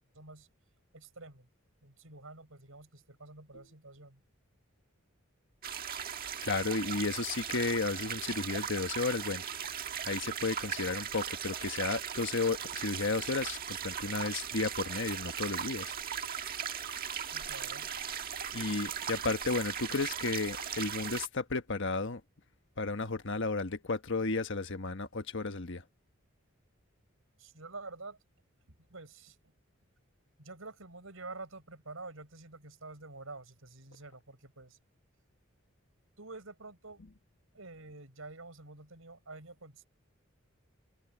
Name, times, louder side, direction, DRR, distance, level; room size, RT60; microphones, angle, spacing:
voice 1, 0.1-0.5 0.9-1.5 1.8-4.2 17.2-17.9 27.4-28.2 28.8-29.4 30.4-34.8 36.2-37.0 37.5-39.9, right 3 dB, 75° right, 7.5 m, -48 dB
sound 1, 5.6-21.3, right 8 dB, 45° right, 1.6 m, -38 dB
voice 2, 6.4-9.4 10.1-15.9 18.5-22.2 22.8-25.8, left 3 dB, 60° left, 1.3 m, -33 dB
open air
head